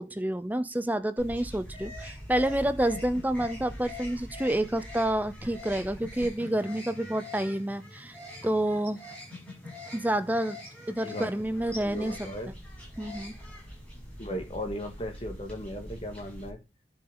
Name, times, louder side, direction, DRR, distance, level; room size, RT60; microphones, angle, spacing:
voice 1, 0.0-8.2 8.4-9.0 9.9-10.6 10.9-12.2 13.0-13.3, right 1 dB, 10° right, 0.6 m, -29 dB
sound 1, 1.2-16.5, left 1 dB, 5° left, 6.0 m, -43 dB
voice 2, 11.8-12.5 14.2-16.6, equal, 30° left, 2.0 m, -37 dB
10.0 x 6.3 x 3.9 m
head